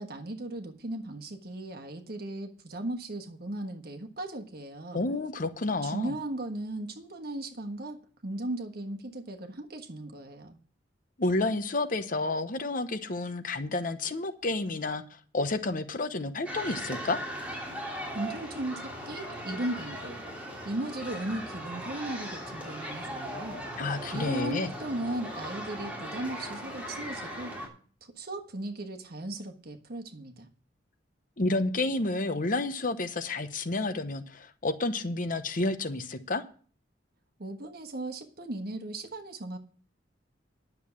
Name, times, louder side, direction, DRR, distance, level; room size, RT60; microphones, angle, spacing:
voice 1, 0.0-5.0 5.8-10.6 18.1-20.2 20.6-23.6 24.1-27.5 28.0-30.5 37.4-39.6, right 1 dB, 55° right, 5 dB, 1.4 m, -37 dB
voice 2, 4.9-6.1 11.2-17.2 23.8-24.7 31.4-36.4, left 2 dB, 45° left, 10 dB, 0.9 m, -30 dB
sound 1, 16.5-27.7, equal, 10° right, 3.1 m, -38 dB
10.5 x 7.1 x 7.1 m, 0.43 s
head